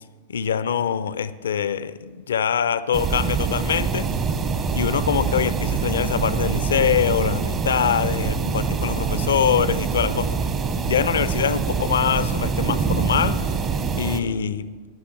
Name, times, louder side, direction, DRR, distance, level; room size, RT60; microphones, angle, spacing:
voice 1, 0.3-4.1 4.7-10.4 10.9-13.4 13.9-14.7, left 8 dB, 65° left, 0.5 m, -23 dB
sound 1, 2.9-14.2, right 5 dB, 30° right, 1.1 m, -24 dB
21.5 x 11.0 x 3.2 m
figure-of-eight pair, 90°, 0 cm